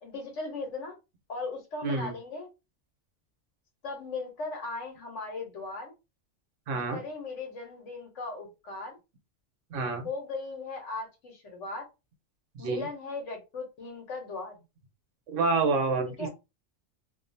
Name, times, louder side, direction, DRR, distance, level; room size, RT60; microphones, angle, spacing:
voice 1, 0.0-1.0 1.3-2.5 3.8-5.9 6.9-9.0 10.0-11.8 12.6-14.6 16.2-16.3, left 3 dB, 75° left, 3 dB, 1.3 m, -38 dB
voice 2, 1.8-2.1 6.7-7.0 9.7-10.1 12.5-12.8 15.3-16.3, right 3 dB, 90° right, 5 dB, 1.1 m, -28 dB
2.7 x 2.4 x 2.6 m, 0.26 s
omnidirectional pair, 1.3 m